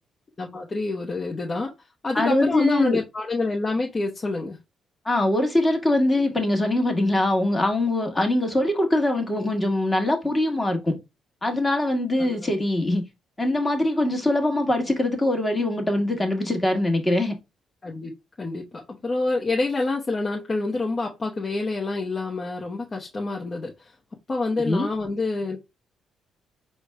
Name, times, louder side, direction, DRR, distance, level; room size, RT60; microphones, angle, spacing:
voice 1, 0.4-1.7 2.0-4.6 12.2-12.5 17.8-18.1 18.4-23.9 24.3-25.7, left 3 dB, 35° left, 0.9 m, -27 dB
voice 2, 2.1-3.0 5.0-11.0 11.4-13.0 13.4-17.3 24.6-24.9, left 1 dB, 15° left, 1.3 m, -22 dB
4.5 x 2.2 x 4.6 m
cardioid pair, 90°, 0 cm